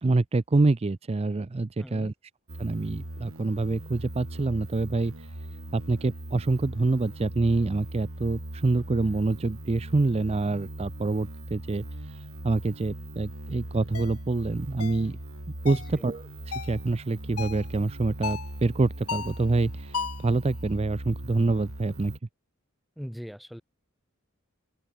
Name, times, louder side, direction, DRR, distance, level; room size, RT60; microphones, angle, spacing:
voice 1, 0.0-2.1 2.6-5.3 5.7-15.2 15.6-22.1, right 3 dB, 30° right, 0.4 m, -26 dB
voice 2, 1.8-2.1 15.7-16.1 23.0-23.6, equal, ahead, 1.7 m, -40 dB
sound 1, 2.5-22.2, right 1 dB, 65° right, 3.4 m, -40 dB
sound 2, 13.9-14.1 14.8-15.1 15.7-15.9 16.5-16.8 17.4-17.7 18.2-18.5 19.1-19.4 19.9-20.3, left 5 dB, 90° left, 1.8 m, -34 dB
open air
head